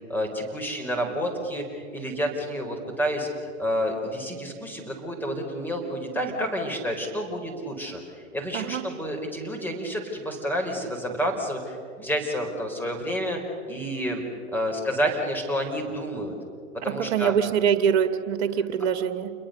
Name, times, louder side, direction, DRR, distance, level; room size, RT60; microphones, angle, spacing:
voice 1, 0.1-3.3 3.6-8.0 8.3-16.3 16.8-17.3, equal, 5° left, 1 dB, 4.6 m, -29 dB
voice 2, 8.5-8.8 16.8-19.3, right 8 dB, 55° right, 10 dB, 1.9 m, -24 dB
28.5 x 22.0 x 6.8 m, 2.3 s
figure-of-eight pair, 105°, 39 cm